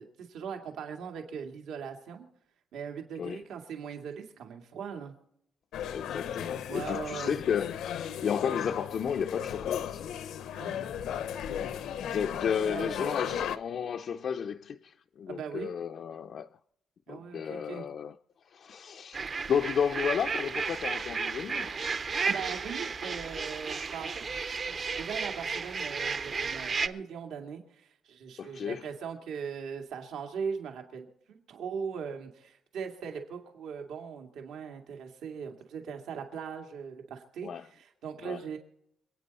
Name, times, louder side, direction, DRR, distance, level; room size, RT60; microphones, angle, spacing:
voice 1, 0.0-2.3 2.7-5.1 6.7-7.4 10.5-11.1 12.6-13.3 15.3-15.7 17.1-17.8 22.2-38.6, right 6 dB, 80° right, 2.2 m, -40 dB
sound 1, 5.7-13.6, left 9 dB, 85° left, 0.8 m, -35 dB
voice 2, 5.9-10.1 10.7-10.8 11.6-11.7 12.0-16.5 17.1-18.1 18.5-21.8 28.4-28.9 37.4-37.7 38.2-38.4, left 7 dB, 45° left, 0.4 m, -33 dB
sound 2, 19.1-26.9, right 5 dB, 30° right, 0.6 m, -33 dB
27.0 x 9.3 x 4.1 m
cardioid pair, 170°, 0 cm